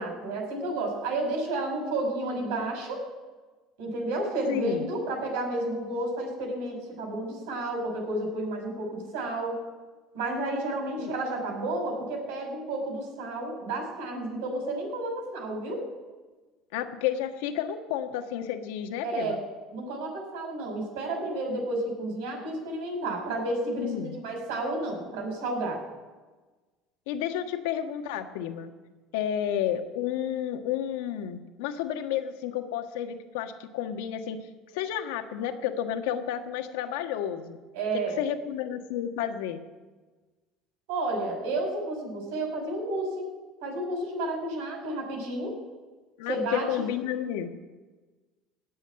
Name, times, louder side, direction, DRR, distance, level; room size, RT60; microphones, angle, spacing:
voice 1, 0.0-3.0 3.8-9.6 10.1-15.8 19.0-19.4 19.7-25.8 37.7-38.2 40.9-43.2 43.6-45.6 46.3-46.9, right 2 dB, 80° right, 2 dB, 5.5 m, -31 dB
voice 2, 4.5-4.9 11.0-11.1 16.7-19.4 23.7-24.2 27.1-28.7 29.1-34.4 34.7-37.6 37.9-39.6 46.2-47.5, left 10 dB, 85° left, 6 dB, 1.4 m, -31 dB
18.0 x 6.5 x 9.6 m, 1.3 s
supercardioid pair, 110°, 0 cm